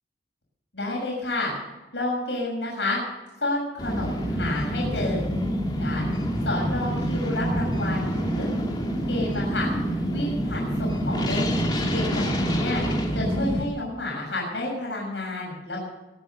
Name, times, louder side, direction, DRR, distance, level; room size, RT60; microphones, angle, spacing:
voice 1, 0.7-1.5 1.9-3.0 3.4-5.2 5.8-6.0 6.4-8.5 9.1-9.7 10.1-11.6 11.9-12.8 13.1-15.8, left 2 dB, 85° left, -3 dB, 6.7 m, -30 dB
sound 1, 3.8-13.6, equal, 25° left, 2.8 m, -26 dB
23.0 x 9.3 x 6.5 m, 1.1 s
head